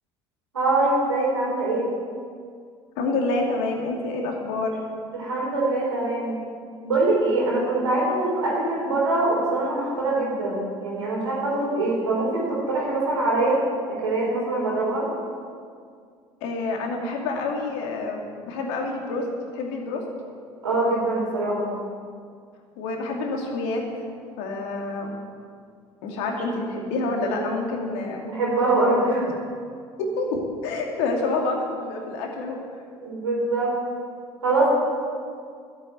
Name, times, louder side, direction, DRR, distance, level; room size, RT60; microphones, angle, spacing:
voice 1, 0.5-1.9 5.1-6.4 6.8-13.6 13.9-15.1 20.6-21.7 28.3-29.2 33.0-33.7 34.4-34.7, right 2 dB, 90° right, -4 dB, 4.3 m, -23 dB
voice 2, 3.0-4.7 16.4-19.3 19.5-20.0 22.8-23.8 24.4-25.1 26.0-28.2 30.0-32.6, left 3 dB, 70° left, 0 dB, 2.5 m, -27 dB
12.5 x 8.3 x 9.1 m, 2.2 s
hypercardioid pair, 60°, 15 cm